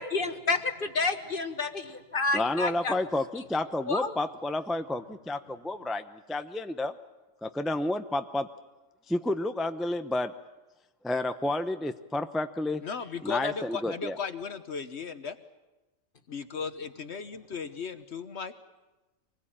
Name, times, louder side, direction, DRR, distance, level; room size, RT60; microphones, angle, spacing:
voice 1, 0.1-0.6 0.9-2.9 3.9-4.1, left 3 dB, 40° left, 8 dB, 1.6 m, -29 dB
voice 2, 2.3-6.0 6.3-6.9 7.4-8.5 9.1-10.3 11.0-12.8 13.2-14.2, left 2 dB, ahead, 8 dB, 0.6 m, -30 dB
voice 3, 12.8-15.4 16.3-18.5, left 5 dB, 55° left, 10 dB, 1.3 m, -36 dB
26.0 x 20.5 x 8.9 m, 1.1 s
omnidirectional pair, 1.4 m